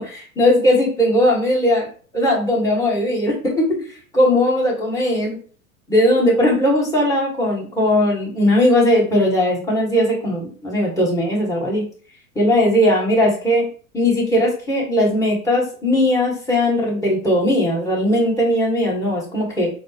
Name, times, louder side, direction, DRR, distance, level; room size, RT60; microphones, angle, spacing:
voice 1, 0.0-1.9 2.1-3.7 4.1-5.4 5.9-11.8 12.3-13.6 13.9-19.7, left 1 dB, 5° left, -4 dB, 1.5 m, -18 dB
4.0 x 2.1 x 2.9 m, 0.41 s
hypercardioid pair, 95°, 43 cm